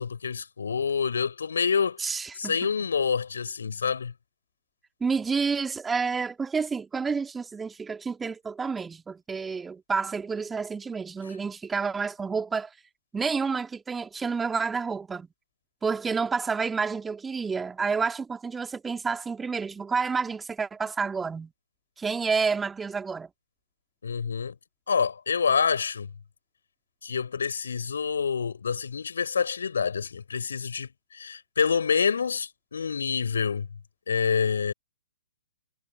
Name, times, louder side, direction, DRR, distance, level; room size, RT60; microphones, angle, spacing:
voice 1, 0.0-4.1 24.0-24.5 24.9-26.1 27.0-33.7 34.1-34.7, left 6 dB, 65° left, 4.6 m, -27 dB
voice 2, 2.0-2.7 5.0-12.7 13.1-15.3 15.8-21.5 22.0-23.3, right 5 dB, 10° right, 2.3 m, -29 dB
figure-of-eight pair, 120°, 0 cm